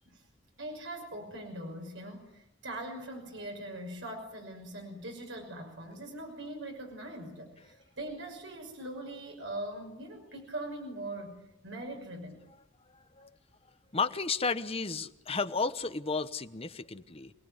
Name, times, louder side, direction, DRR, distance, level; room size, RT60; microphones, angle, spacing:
voice 1, 0.6-12.4, right 1 dB, 70° right, 2 dB, 6.1 m, -41 dB
voice 2, 12.9-13.3 13.9-17.3, left 4 dB, 30° left, 10 dB, 1.1 m, -33 dB
27.5 x 19.0 x 9.7 m, 0.85 s
head